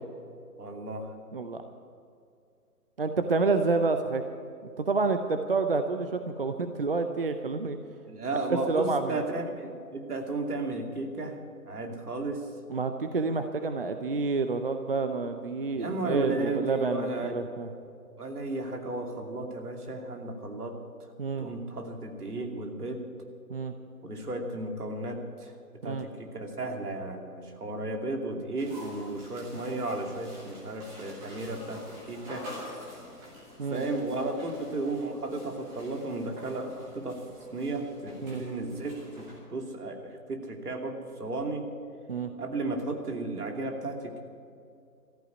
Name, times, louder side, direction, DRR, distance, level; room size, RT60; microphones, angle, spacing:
voice 1, 0.6-1.1 8.1-11.4 11.7-12.5 15.7-17.4 18.2-20.8 21.4-23.0 24.0-25.5 25.8-32.5 33.6-37.2 37.5-41.7 42.4-44.2, right 2 dB, 70° right, 3 dB, 2.8 m, -34 dB
voice 2, 1.3-1.6 3.0-4.3 4.8-7.8 8.5-9.2 12.7-17.7 21.2-21.5 23.5-23.7 25.8-26.1 33.6-33.8 38.2-38.4 42.1-42.3, right 3 dB, 40° right, 8 dB, 0.6 m, -28 dB
sound 1, 28.6-39.4, left 1 dB, 5° right, 1.1 m, -47 dB
14.0 x 9.4 x 9.6 m, 2.4 s
figure-of-eight pair, 155°, 47 cm